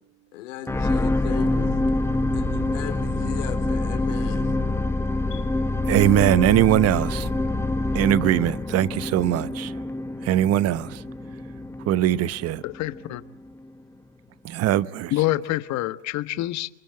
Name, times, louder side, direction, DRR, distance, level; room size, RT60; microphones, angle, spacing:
voice 1, 0.3-1.8 2.3-4.5 5.3-5.5, left 11 dB, 85° left, 4.2 m, -37 dB
sound 1, 0.7-13.1 13.6-13.7, left 2 dB, 5° left, 1.1 m, -26 dB
voice 2, 5.8-7.3 7.9-9.8 10.2-11.0 11.9-12.6 14.4-15.1, right 12 dB, 40° right, 1.0 m, -21 dB
voice 3, 12.6-13.2 15.1-16.7, left 16 dB, 45° left, 1.3 m, -26 dB
27.0 x 24.5 x 8.8 m
supercardioid pair, 110°, 37 cm